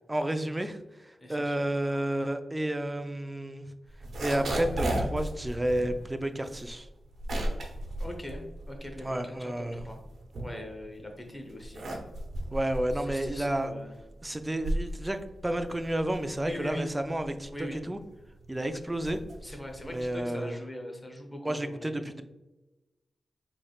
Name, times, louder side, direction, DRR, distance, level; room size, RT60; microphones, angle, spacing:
voice 1, 0.1-0.8 1.3-3.7 4.2-6.9 9.0-9.8 12.5-13.7 14.2-17.5 17.8-18.0 18.5-19.2 19.8-20.6 21.4-22.2, right 1 dB, 15° right, 7 dB, 0.4 m, -31 dB
voice 2, 1.2-1.7 8.0-10.0 10.4-11.9 12.9-14.0 16.4-16.9 17.5-17.8 19.4-22.1, left 1 dB, 15° left, 2 dB, 0.8 m, -41 dB
sound 1, 3.9-9.2 9.5-11.0 11.5-20.2, right 1 dB, 80° right, 0.9 m, -35 dB
4.4 x 3.2 x 2.3 m, 1.1 s
cardioid pair, 70°, 0 cm